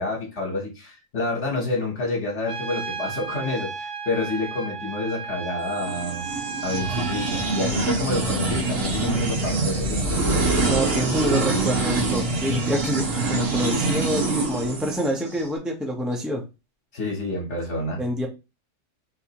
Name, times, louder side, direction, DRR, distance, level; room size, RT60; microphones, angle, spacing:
voice 1, 0.0-6.3 6.6-10.6 16.9-18.0, left 2 dB, 60° left, 1.3 m, -28 dB
Trumpet, 2.5-7.7, right 6 dB, 55° right, 0.8 m, -34 dB
sound 1, 5.7-15.4, right 3 dB, 85° right, 1.5 m, -25 dB
voice 2, 10.7-16.4 18.0-18.3, equal, ahead, 0.3 m, -26 dB
4.1 x 2.5 x 2.8 m
omnidirectional pair, 1.3 m